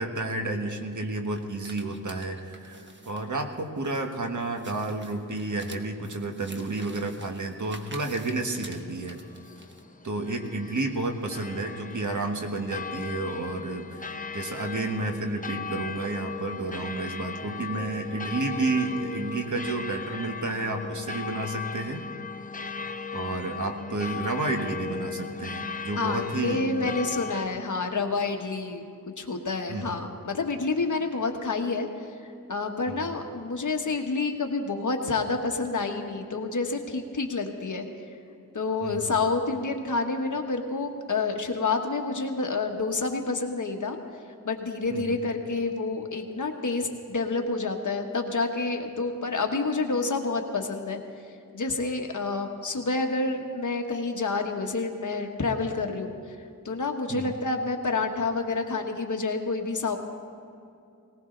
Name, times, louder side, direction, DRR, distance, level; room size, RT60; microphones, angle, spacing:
voice 1, 0.0-9.2 10.0-14.0 14.3-22.0 23.1-26.7 29.7-30.0 32.9-33.0 38.8-39.0 44.9-45.2 57.1-57.3, right 3 dB, 60° right, 4 dB, 1.5 m, -31 dB
sound 1, 1.3-9.8, right 2 dB, 35° right, 1.3 m, -48 dB
sound 2, 8.9-27.4, left 5 dB, 25° left, 0.7 m, -37 dB
voice 2, 26.0-31.9 32.5-37.9 38.5-44.0 44.4-51.0 51.5-56.4 56.6-60.0, left 3 dB, 60° left, 4 dB, 1.4 m, -28 dB
19.0 x 19.0 x 3.9 m, 2.6 s
wide cardioid pair, 95°, 34 cm